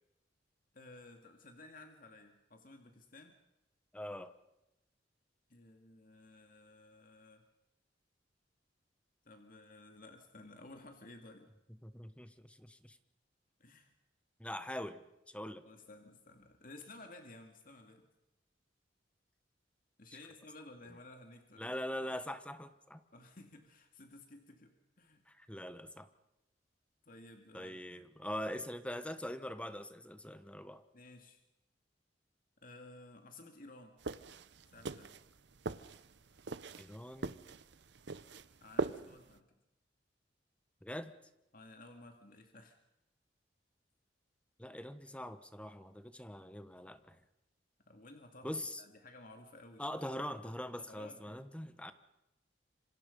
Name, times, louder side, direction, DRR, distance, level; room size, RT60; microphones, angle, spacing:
voice 1, 0.7-3.4 5.5-7.4 9.2-11.5 13.6-13.9 15.6-18.1 20.0-21.8 23.1-25.2 27.0-27.8 30.9-31.4 32.6-34.0 34.7-35.2 38.6-39.6 41.5-42.8 47.9-48.5 48.8-49.9 50.8-51.5, left 2 dB, 50° left, 4 dB, 2.3 m, -55 dB
voice 2, 3.9-4.3 11.8-13.0 14.4-15.6 21.6-23.0 25.3-26.1 27.5-30.8 36.8-37.4 40.8-41.1 44.6-47.2 48.4-48.8 49.8-51.9, left 1 dB, 5° left, 11 dB, 1.2 m, -43 dB
sound 1, 34.0-39.4, right 3 dB, 65° right, 0.8 m, -42 dB
27.0 x 25.5 x 5.4 m, 0.91 s
head